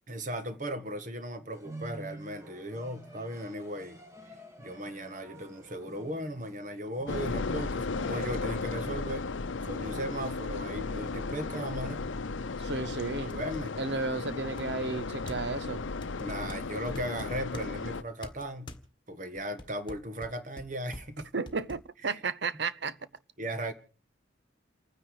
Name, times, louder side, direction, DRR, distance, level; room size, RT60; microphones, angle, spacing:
voice 1, 0.1-4.0 4.6-9.3 9.7-12.1 13.2-13.8 16.2-18.8 19.1-21.3 22.1-22.2 23.4-23.7, right 1 dB, 40° right, 1.5 m, -37 dB
sound 1, 1.5-11.7, right 1 dB, 15° right, 1.9 m, -50 dB
sound 2, 7.1-18.0, left 3 dB, 80° left, 0.7 m, -35 dB
sound 3, 12.2-12.3 12.8-12.9 13.3-13.7 14.6-15.6 16.0-17.7 18.2-18.9 19.4-21.9, left 1 dB, 25° left, 1.6 m, -46 dB
voice 2, 12.6-13.3 13.8-15.8 21.3-23.0, right 4 dB, 60° right, 0.8 m, -33 dB
29.0 x 9.8 x 4.9 m
head